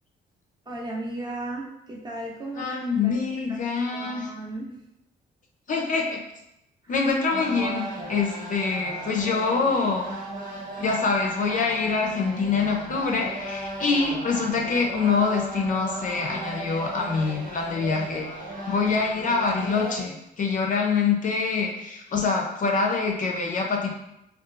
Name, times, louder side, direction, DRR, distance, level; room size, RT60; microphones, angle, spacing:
voice 1, 0.7-2.7 3.0-3.2 3.5-3.6 3.9-4.8 6.8-6.9, right 1 dB, 20° right, -3 dB, 0.6 m, -35 dB
voice 2, 2.6-4.3 5.7-6.2 6.9-10.1 10.8-23.9, left 4 dB, 40° left, 1 dB, 0.4 m, -25 dB
sound 1, 7.3-20.0, right 1 dB, 45° right, 0.9 m, -36 dB
2.7 x 2.3 x 2.4 m, 0.84 s
cardioid pair, 90°, 20 cm